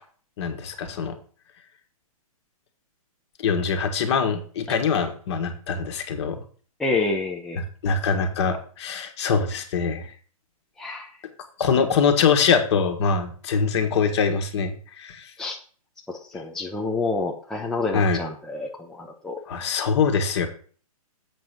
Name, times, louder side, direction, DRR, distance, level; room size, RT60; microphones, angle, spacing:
voice 1, 0.4-1.2 3.4-6.4 7.6-10.1 11.6-15.2 17.9-18.2 19.5-20.5, left 5 dB, 45° left, 7 dB, 1.6 m, -23 dB
voice 2, 6.8-7.6 10.8-11.1 15.4-15.6 16.1-19.4, left 3 dB, 5° left, 0 dB, 0.6 m, -28 dB
7.6 x 5.2 x 6.0 m, 0.43 s
hypercardioid pair, 145°, 19 cm